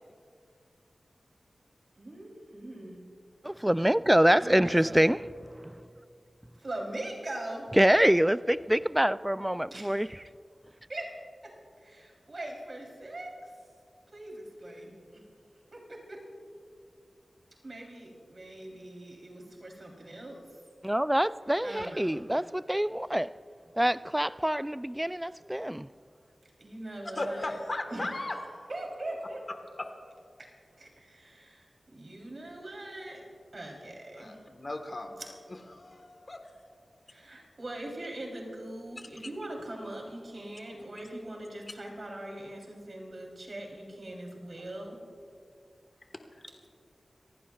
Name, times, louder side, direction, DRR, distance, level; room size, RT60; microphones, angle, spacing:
voice 1, 2.0-3.0 4.4-5.0 6.6-7.7 9.7-10.2 10.9-11.1 11.4-11.5 11.8-13.5 14.1-15.2 15.7-16.2 17.6-20.4 21.6-22.2 26.6-27.6 27.9-28.3 28.7-29.4 30.8-33.2 33.5-34.4 37.1-45.0, right 1 dB, 55° right, 3.4 m, -41 dB
voice 2, 3.4-5.3 5.6-5.7 7.7-10.1 20.8-23.3 23.8-25.9, equal, 10° right, 0.3 m, -25 dB
voice 3, 27.1-28.4 29.8-29.9 34.2-35.2 35.7-36.4, left 2 dB, 45° left, 1.4 m, -36 dB
27.0 x 15.5 x 2.4 m
cardioid pair, 55°, 0 cm